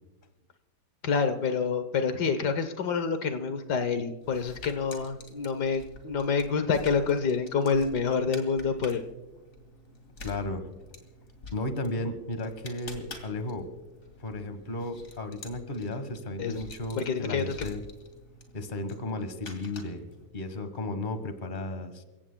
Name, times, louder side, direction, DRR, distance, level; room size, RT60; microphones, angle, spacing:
voice 1, 1.0-9.0 16.4-16.6 17.0-17.5, left 5 dB, 70° left, 9 dB, 1.5 m, -27 dB
sound 1, 4.2-20.3, left 3 dB, 50° left, 2.6 m, -48 dB
voice 2, 10.2-10.7 11.5-13.7 14.2-17.8 18.5-20.0 20.3-22.1, left 2 dB, 30° left, 9 dB, 1.4 m, -34 dB
29.0 x 17.0 x 2.2 m, 1.1 s
omnidirectional pair, 1.9 m